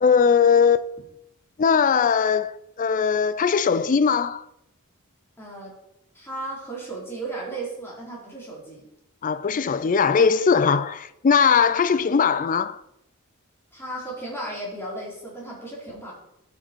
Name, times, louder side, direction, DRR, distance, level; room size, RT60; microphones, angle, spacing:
voice 1, 0.0-0.9 1.6-2.5 2.8-4.4 9.2-12.8, left 6 dB, 35° left, 0.4 m, -20 dB
voice 2, 5.4-5.8 6.1-8.8 13.7-16.1, right 2 dB, 10° left, 4.1 m, -35 dB
13.0 x 7.0 x 4.6 m
head